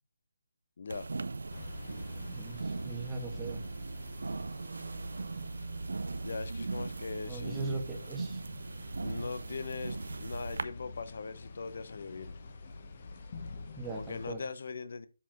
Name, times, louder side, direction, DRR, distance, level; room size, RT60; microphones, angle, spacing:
voice 1, 0.8-1.1 6.2-7.8 9.0-12.4 13.9-15.1, left 4 dB, 50° left, 0.8 m, -40 dB
sound 1, 0.9-10.6, right 3 dB, 75° right, 0.7 m, -39 dB
sound 2, 1.5-14.3, left 3 dB, 35° left, 1.2 m, -49 dB
voice 2, 2.1-3.6 5.4-5.5 7.3-8.4 13.8-14.4, right 3 dB, 5° right, 1.3 m, -40 dB
7.7 x 4.2 x 5.9 m
hypercardioid pair, 170°, 0 cm